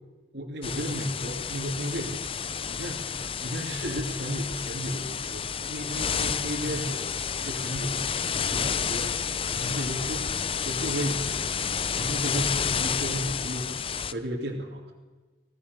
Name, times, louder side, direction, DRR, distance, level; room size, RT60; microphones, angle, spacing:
voice 1, 0.3-11.5 11.9-14.9, equal, 75° right, -2 dB, 2.8 m, -34 dB
sound 1, 0.6-14.1, left 7 dB, 30° left, 0.6 m, -30 dB
26.5 x 16.5 x 6.9 m, 1.3 s
head